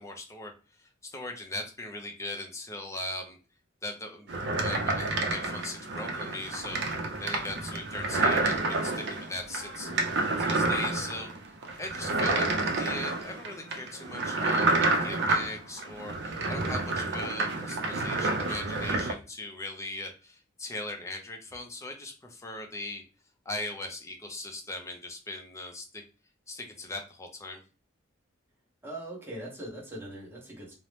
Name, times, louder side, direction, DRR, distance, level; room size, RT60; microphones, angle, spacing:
voice 1, 0.0-3.4 3.8-6.8 7.2-11.3 11.8-23.0 23.5-26.0 26.5-27.6, left 2 dB, 15° left, 3 dB, 0.5 m, -39 dB
sound 1, 4.3-19.1, right 2 dB, 60° right, 0.5 m, -29 dB
voice 2, 28.8-30.7, right 1 dB, 10° right, -4 dB, 0.9 m, -41 dB
2.8 x 2.0 x 3.2 m, 0.34 s
head